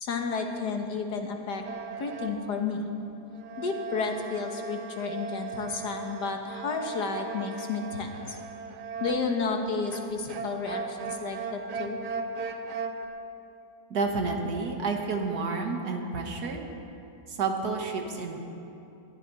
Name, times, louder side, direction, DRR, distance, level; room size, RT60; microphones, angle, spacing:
voice 1, 0.0-1.6 2.0-2.8 3.6-8.3 9.0-12.0, left 4 dB, 90° left, 3 dB, 1.9 m, -31 dB
sound 1, 1.7-2.5 3.3-9.4 9.9-13.1, right 5 dB, 90° right, 1.5 m, -37 dB
voice 2, 13.9-16.7 17.3-18.4, right 4 dB, 70° right, 3 dB, 1.9 m, -30 dB
21.5 x 13.5 x 4.1 m, 2.7 s
omnidirectional pair, 1.7 m